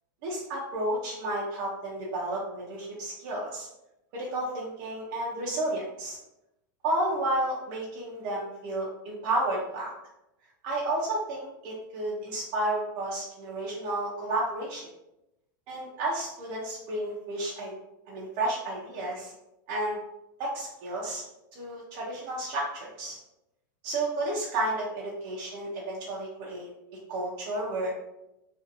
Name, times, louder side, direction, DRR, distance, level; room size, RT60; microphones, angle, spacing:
voice 1, 0.2-3.7 4.1-6.2 6.8-9.9 10.6-14.8 15.7-17.7 18.1-19.3 19.7-20.0 20.4-21.2 21.5-23.2 23.8-26.7 27.1-28.0, right 1 dB, 50° right, -5 dB, 0.6 m, -31 dB
2.6 x 2.5 x 2.5 m, 0.90 s
supercardioid pair, 140°, 11 cm